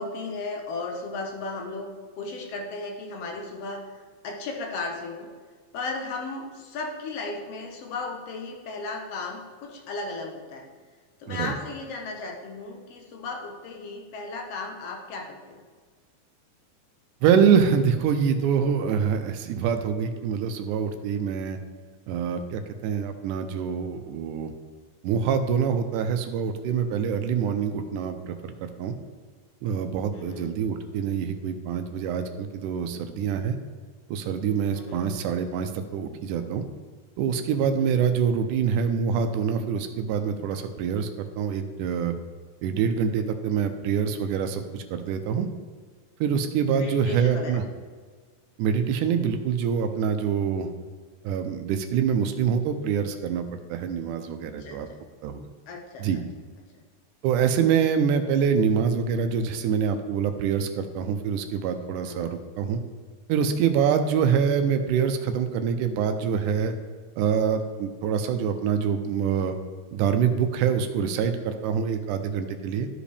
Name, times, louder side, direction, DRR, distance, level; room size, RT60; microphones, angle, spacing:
voice 1, 0.0-1.9 2.2-5.3 5.7-10.7 11.2-15.6 30.1-30.5 34.7-35.1 37.8-38.1 46.8-47.6 54.5-54.8 55.7-56.1 62.0-62.4 63.9-64.0, left 3 dB, 65° left, 1 dB, 1.7 m, -35 dB
voice 2, 17.2-21.6 22.1-24.5 25.0-28.9 29.6-33.6 34.1-36.6 37.2-42.2 42.6-45.5 46.2-47.6 48.6-50.7 51.2-54.9 55.2-55.5 56.0-56.2 57.2-62.8 63.3-66.8 67.2-69.5 69.9-72.9, right 7 dB, 85° right, 8 dB, 2.1 m, -25 dB
13.0 x 5.0 x 3.3 m, 1.6 s
omnidirectional pair, 3.6 m